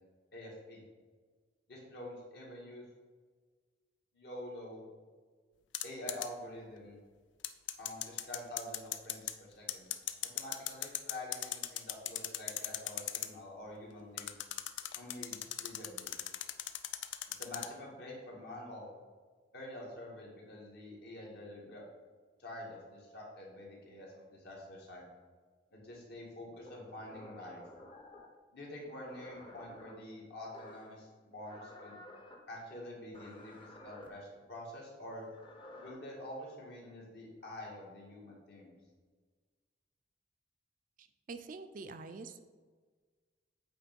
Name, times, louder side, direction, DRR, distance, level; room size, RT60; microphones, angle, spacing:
voice 1, 0.3-0.8 1.7-2.8 4.1-4.9 5.8-7.0 7.8-9.3 9.6-9.9 10.2-14.3 14.9-16.2 17.4-18.9 19.5-21.8 22.4-25.0 25.7-27.6 28.5-32.0 32.5-35.3 35.8-38.8, left 1 dB, 60° left, -3 dB, 1.8 m, -47 dB
sound 1, 5.7-6.3 7.4-9.3 9.7-13.3 14.2-17.7, left 12 dB, 90° left, 0.4 m, -38 dB
sound 2, 26.6-28.3 29.0-29.9 30.5-31.0 31.4-32.4 33.1-34.1 35.2-35.9, left 1 dB, 30° left, 0.8 m, -52 dB
voice 2, 41.0-42.4, right 4 dB, 45° right, 9 dB, 0.4 m, -46 dB
8.4 x 3.1 x 5.2 m, 1.5 s
head